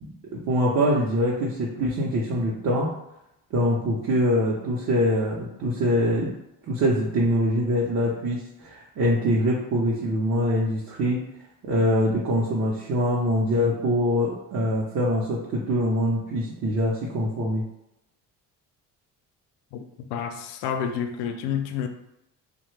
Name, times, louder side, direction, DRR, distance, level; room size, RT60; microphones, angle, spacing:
voice 1, 0.0-2.9 3.5-6.3 6.7-11.2 11.6-17.6, equal, 45° right, 0.7 m, -24 dB
voice 2, 20.1-21.9, left 8 dB, 85° left, 0.5 m, -29 dB
2.7 x 2.2 x 3.2 m
supercardioid pair, 80°, 39 cm